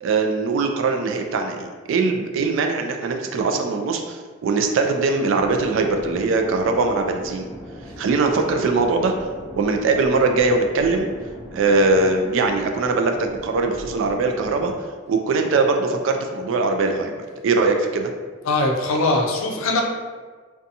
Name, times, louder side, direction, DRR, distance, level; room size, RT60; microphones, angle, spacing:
voice 1, 0.0-7.5 8.0-9.1 9.5-11.1 11.5-14.7 15.1-17.2 17.4-18.1, right 3 dB, 70° right, 4 dB, 0.3 m, -21 dB
sound 1, 5.3-14.8, equal, 10° left, 0.4 m, -40 dB
voice 2, 18.4-19.8, left 2 dB, 80° left, 1 dB, 0.4 m, -21 dB
2.7 x 2.2 x 2.6 m, 1.5 s
head